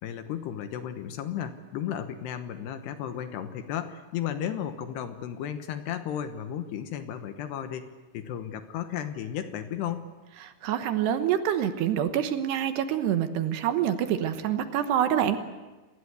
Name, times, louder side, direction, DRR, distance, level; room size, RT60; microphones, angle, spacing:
voice 1, 0.0-7.9 8.1-10.0, left 9 dB, 70° left, 9 dB, 3.0 m, -34 dB
voice 2, 10.6-15.4, right 10 dB, 70° right, 9 dB, 3.1 m, -26 dB
27.5 x 19.5 x 8.2 m, 1.2 s
omnidirectional pair, 5.3 m